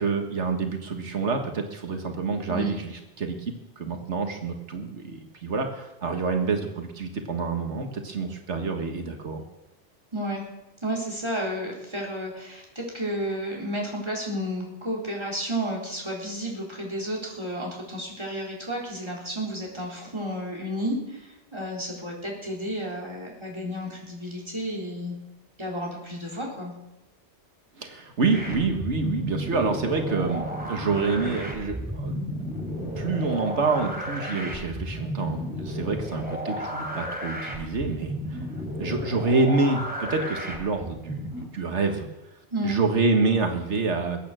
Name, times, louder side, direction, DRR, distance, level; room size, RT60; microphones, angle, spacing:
voice 1, 0.0-2.8 3.2-9.4 27.8-32.2 32.5-32.6 33.0-38.4 38.8-41.3 41.5-42.1 42.6-44.2, right 4 dB, 90° right, 4 dB, 1.9 m, -27 dB
voice 2, 10.1-10.5 10.8-25.2 25.6-26.7 42.5-42.8, equal, 25° right, -2 dB, 4.2 m, -32 dB
sound 1, 28.3-41.4, equal, 10° right, 3.3 m, -33 dB
21.5 x 8.9 x 6.3 m, 0.96 s
omnidirectional pair, 1.2 m